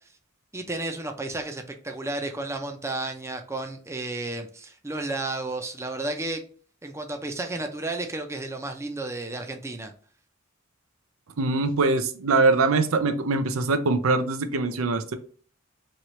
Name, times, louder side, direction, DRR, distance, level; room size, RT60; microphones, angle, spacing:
voice 1, 0.5-6.4 6.8-9.9, right 2 dB, 15° right, 0.5 m, -32 dB
voice 2, 11.4-15.1, right 3 dB, 90° right, 0.5 m, -23 dB
3.1 x 2.9 x 4.2 m
head